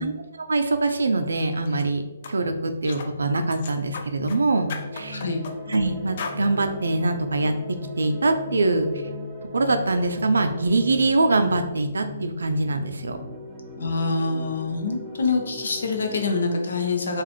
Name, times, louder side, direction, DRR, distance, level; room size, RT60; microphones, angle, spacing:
voice 1, 0.0-2.0 2.3-5.2 5.7-7.5 8.0-9.0 9.5-13.2, right 2 dB, 90° right, 7 dB, 0.4 m, -23 dB
sound 1, 1.6-1.9 2.2-2.4 2.8-3.1 3.5-4.4 4.7-5.8 6.2-6.4, left 5 dB, 50° left, 0.3 m, -36 dB
sound 2, 4.6-16.5, left 2 dB, 20° right, 0.5 m, -38 dB
voice 2, 5.1-5.4 13.8-17.2, left 3 dB, 75° left, 3 dB, 0.7 m, -25 dB
4.0 x 2.5 x 3.0 m, 1.2 s
hypercardioid pair, 150°, 0 cm